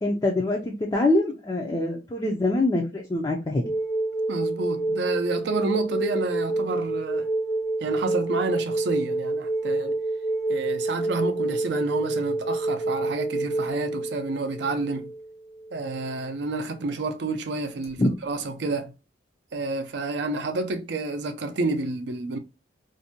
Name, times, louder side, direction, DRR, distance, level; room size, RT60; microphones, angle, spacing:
voice 1, 0.0-3.6 18.0-18.1, left 2 dB, 20° left, 0.3 m, -24 dB
sound 1, 3.6-16.1 17.8-17.9, right 2 dB, 55° left, 0.6 m, -28 dB
voice 2, 4.3-7.3 7.8-9.9 10.5-15.1 15.7-18.9 19.5-22.4, right 3 dB, 65° right, 0.5 m, -29 dB
2.6 x 2.1 x 2.7 m
head